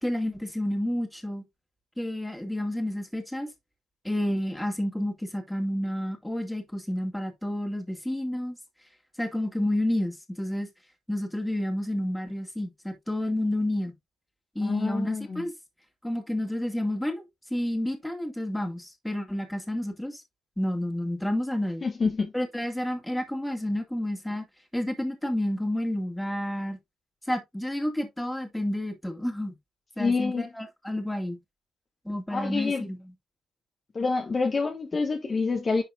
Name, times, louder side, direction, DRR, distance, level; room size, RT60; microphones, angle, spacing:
voice 1, 0.0-1.4 2.0-3.5 4.0-8.6 9.2-10.7 11.1-13.9 14.6-15.5 16.0-17.3 17.5-20.2 20.6-21.9 22.3-24.5 24.7-26.8 27.3-29.5 30.0-31.4 32.0-33.1, left 1 dB, 5° left, 2.2 m, -30 dB
voice 2, 14.6-15.4 21.8-22.3 30.0-30.5 32.3-32.8 33.9-35.8, left 4 dB, 35° left, 1.4 m, -27 dB
11.0 x 4.0 x 2.5 m
cardioid pair, 90°, 0 cm